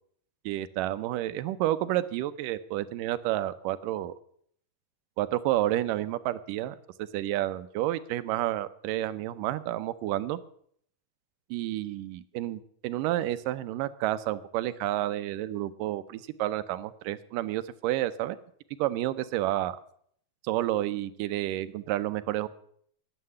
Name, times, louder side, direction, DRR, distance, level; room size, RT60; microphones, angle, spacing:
voice 1, 0.5-4.1 5.2-10.4 11.5-18.4 18.8-19.8 20.4-22.5, right 14 dB, 85° right, 14 dB, 2.3 m, -30 dB
11.5 x 7.7 x 9.6 m, 0.64 s
omnidirectional pair, 3.8 m